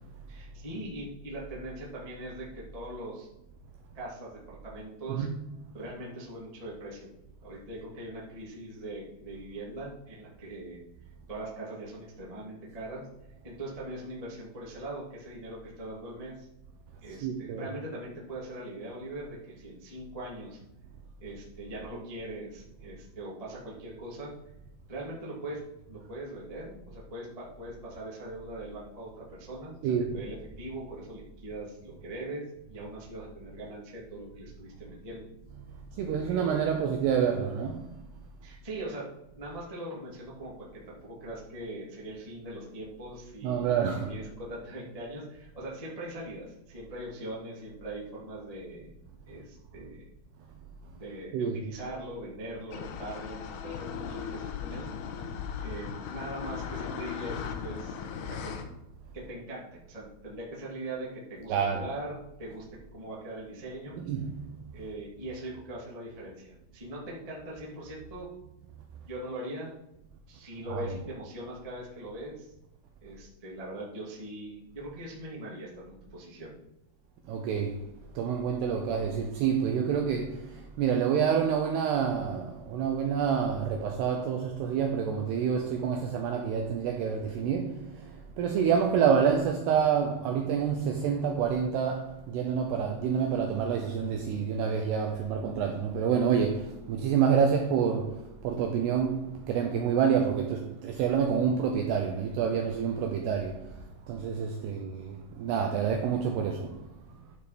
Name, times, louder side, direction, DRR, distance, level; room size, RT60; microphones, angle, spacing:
voice 1, 0.3-3.3 3.9-5.3 5.7-7.1 7.4-10.8 11.3-13.0 13.4-16.5 17.0-20.6 21.2-24.3 24.9-29.7 30.1-35.3 36.2-36.8 38.4-39.1 39.3-43.7 44.1-48.9 49.3-50.0 50.9-54.9 55.6-58.5 59.1-62.6 62.9-64.0 64.7-68.3 69.1-69.7 70.3-72.5 73.0-76.5, right 1 dB, 20° right, 1.0 m, -41 dB
voice 2, 5.1-5.7 17.1-17.7 29.8-30.3 35.5-37.9 43.4-44.1 51.3-51.7 61.5-61.9 63.9-64.6 70.7-71.1 77.3-106.9, right 7 dB, 80° right, 2.4 m, -28 dB
sound 1, 52.7-58.7, left 7 dB, 80° left, 2.5 m, -37 dB
11.5 x 4.9 x 5.1 m
omnidirectional pair, 5.5 m